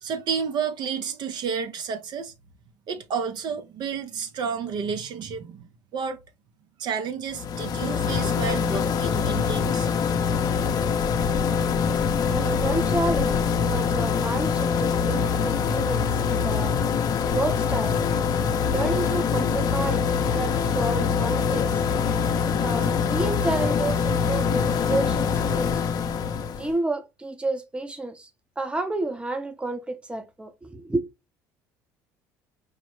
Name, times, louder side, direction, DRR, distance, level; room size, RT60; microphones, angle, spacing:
voice 1, 0.0-2.3 2.9-6.2 6.8-9.9, right 6 dB, 55° right, 0.6 m, -31 dB
sound 1, 7.3-26.7, left 6 dB, 50° left, 0.6 m, -24 dB
voice 2, 12.3-16.7 17.3-18.0 18.6-21.8 22.6-25.9 26.6-28.3 28.6-31.1, right 2 dB, 10° right, 0.7 m, -30 dB
4.8 x 2.1 x 3.0 m
supercardioid pair, 85°, 9 cm